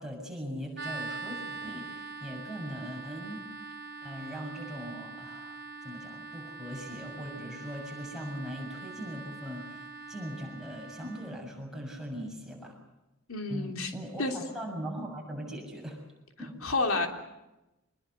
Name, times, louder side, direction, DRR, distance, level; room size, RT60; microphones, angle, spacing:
voice 1, 0.0-3.5 4.0-12.8 13.5-16.0 16.4-16.6 16.9-17.0, equal, 5° right, -1 dB, 6.8 m, -40 dB
sound 1, 0.7-11.4, right 3 dB, 55° right, 2.8 m, -43 dB
voice 2, 13.3-13.9 14.2-14.4 16.6-17.1, left 3 dB, 80° left, 4 dB, 3.3 m, -29 dB
26.0 x 21.5 x 8.1 m, 0.97 s
head